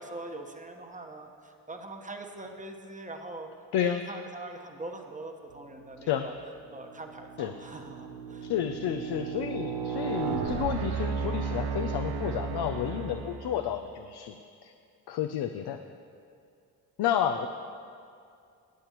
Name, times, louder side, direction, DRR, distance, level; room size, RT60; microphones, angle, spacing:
voice 1, 0.0-3.5 3.8-6.3 6.7-8.5, right 2 dB, 20° right, 4 dB, 1.1 m, -42 dB
voice 2, 3.7-4.0 6.1-6.3 7.4-7.5 8.4-14.4 14.6-14.7 15.1-15.8 17.0-17.5, left 9 dB, 70° left, 6 dB, 0.6 m, -30 dB
sound 1, 6.0-6.4 6.9-13.8, right 6 dB, 85° right, 0.8 m, -34 dB
18.0 x 7.9 x 3.0 m, 2.3 s
supercardioid pair, 60°, 41 cm